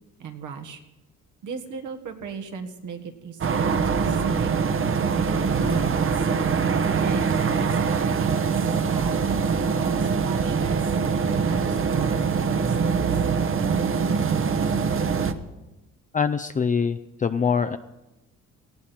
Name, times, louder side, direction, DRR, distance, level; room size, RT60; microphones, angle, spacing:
voice 1, 0.2-0.8 1.4-4.5 4.9-6.3 7.0-10.9 11.4-12.9, right 6 dB, 80° right, 6 dB, 1.8 m, -37 dB
sound 1, 3.4-15.3, right 5 dB, 45° right, 1.0 m, -23 dB
voice 2, 16.1-17.8, left 6 dB, 25° left, 9 dB, 0.5 m, -24 dB
18.5 x 15.0 x 4.4 m, 1.0 s
cardioid pair, 90°, 30 cm